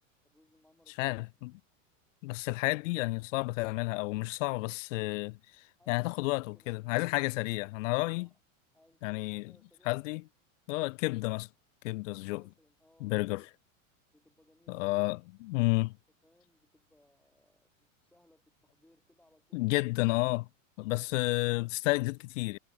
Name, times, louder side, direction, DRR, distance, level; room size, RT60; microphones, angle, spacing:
voice 1, 0.2-1.1 1.4-1.5 5.8-6.8 8.0-8.4 8.7-10.2 12.2-13.5 14.1-15.1 16.2-20.0 20.8-21.2, left 1 dB, 5° left, 3.4 m, -66 dB
voice 2, 1.0-1.5 2.2-8.3 9.0-9.5 9.9-10.2 10.7-11.5 11.8-12.4 13.0-13.4 14.7-16.0 19.5-20.5 20.8-22.6, left 22 dB, 70° left, 0.5 m, -31 dB
supercardioid pair, 145°, 39 cm